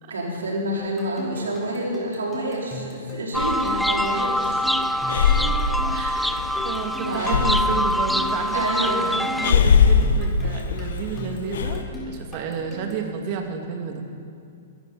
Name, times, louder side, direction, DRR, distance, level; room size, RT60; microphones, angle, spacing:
voice 1, 0.1-4.7 5.0-5.2 7.0-7.5 8.5-9.1, right 1 dB, 85° right, -3 dB, 4.2 m, -28 dB
sound 1, 0.8-13.1, left 2 dB, 15° left, 4.4 m, -37 dB
Breathing, 3.3-11.8, left 5 dB, 70° left, 1.1 m, -23 dB
sound 2, 3.3-9.5, equal, ahead, 0.4 m, -25 dB
voice 2, 5.3-14.0, right 6 dB, 45° right, 3 dB, 2.2 m, -32 dB
21.5 x 13.0 x 4.2 m, 2.5 s
hypercardioid pair, 125°, 0 cm